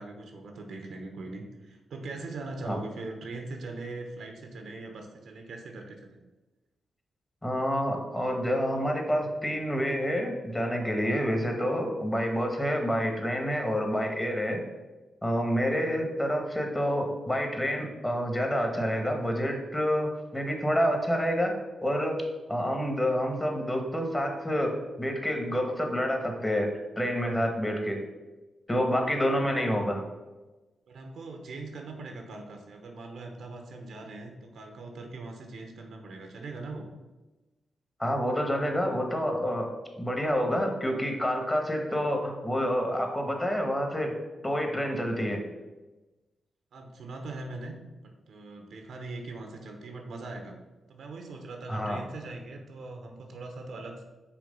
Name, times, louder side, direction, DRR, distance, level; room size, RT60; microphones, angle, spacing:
voice 1, 0.0-6.2 30.9-36.9 46.7-47.7 48.0-50.6 50.9-54.0, right 3 dB, 75° right, 3 dB, 1.0 m, -41 dB
voice 2, 7.4-14.6 15.2-21.5 21.8-22.2 22.5-28.0 28.7-30.0 38.0-39.7 40.0-44.1 44.4-45.4 51.7-52.0, equal, 20° left, 3 dB, 1.5 m, -28 dB
6.0 x 3.3 x 5.3 m, 1.1 s
cardioid pair, 60°, 0 cm